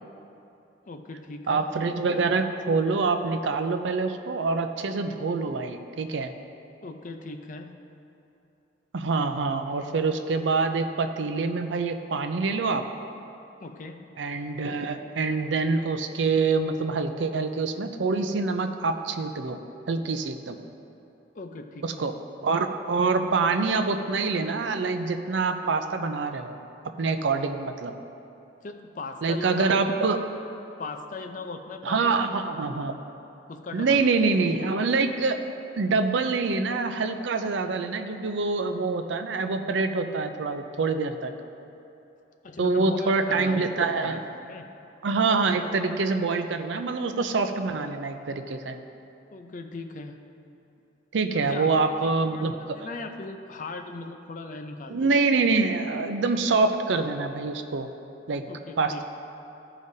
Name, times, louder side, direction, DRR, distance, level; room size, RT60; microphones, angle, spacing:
voice 1, 0.9-1.7 6.8-7.8 13.6-14.1 21.3-22.0 28.6-29.8 30.8-32.3 33.5-34.0 42.4-44.6 49.3-50.2 51.3-55.1 58.5-59.0, left 3 dB, 45° left, 5 dB, 0.5 m, -39 dB
voice 2, 1.5-6.3 8.9-12.8 14.2-19.6 19.9-20.6 21.8-22.1 22.4-26.6 27.0-27.9 29.2-30.2 31.8-32.9 33.7-35.4 35.8-41.3 42.6-44.2 45.0-48.8 51.1-52.8 54.9-57.9 58.3-58.4 58.8-59.0, right 4 dB, 80° right, 7 dB, 0.5 m, -25 dB
14.5 x 5.0 x 2.7 m, 2.9 s
head